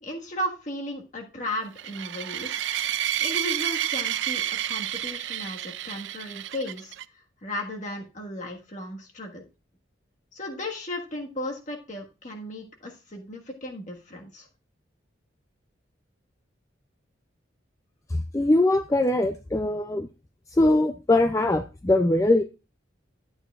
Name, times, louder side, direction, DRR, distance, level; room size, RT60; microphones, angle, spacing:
voice 1, 0.0-2.6 3.2-9.4 10.3-14.5, left 1 dB, 40° left, 1 dB, 1.5 m, -35 dB
sound 1, 1.8-7.0, right 12 dB, 70° right, 0.4 m, -30 dB
voice 2, 18.3-20.1 20.5-22.4, left 2 dB, 15° left, 7 dB, 0.4 m, -21 dB
11.5 x 8.7 x 2.4 m, 0.30 s
head